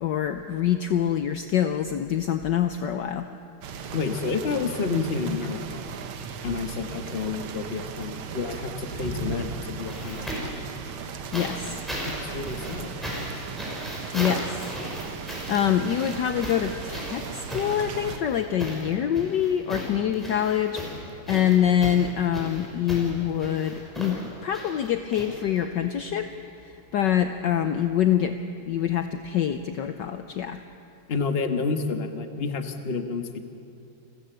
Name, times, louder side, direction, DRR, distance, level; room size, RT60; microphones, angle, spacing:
voice 1, 0.0-3.3 11.3-11.8 14.1-14.8 15.5-20.8 21.3-26.3 26.9-28.4 28.6-30.6, left 10 dB, 65° left, 8 dB, 1.2 m, -25 dB
sound 1, 3.6-18.2, right 6 dB, 75° right, 2.0 m, -37 dB
voice 2, 3.9-5.9 6.4-10.2 12.1-12.9 31.1-33.4, left 4 dB, 30° left, 7 dB, 1.3 m, -29 dB
sound 2, 8.9-10.6 11.3-25.8 27.0-27.1, equal, ahead, 5.9 m, -36 dB
29.5 x 14.5 x 8.0 m, 2.6 s
omnidirectional pair, 2.4 m